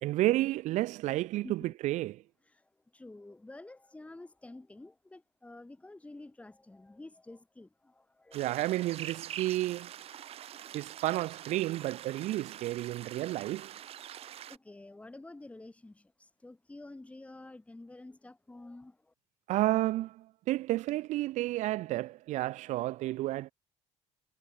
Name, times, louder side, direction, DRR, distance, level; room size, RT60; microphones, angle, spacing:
voice 1, 0.0-2.2 8.3-9.9 10.7-13.8 19.5-23.5, right 16 dB, 85° right, 1.2 m, -31 dB
voice 2, 1.4-1.7 2.5-8.5 14.5-19.1, left 2 dB, 10° left, 4.8 m, -50 dB
sound 1, 8.3-14.6, right 11 dB, 55° right, 1.8 m, -45 dB
cardioid pair, 135°, 12 cm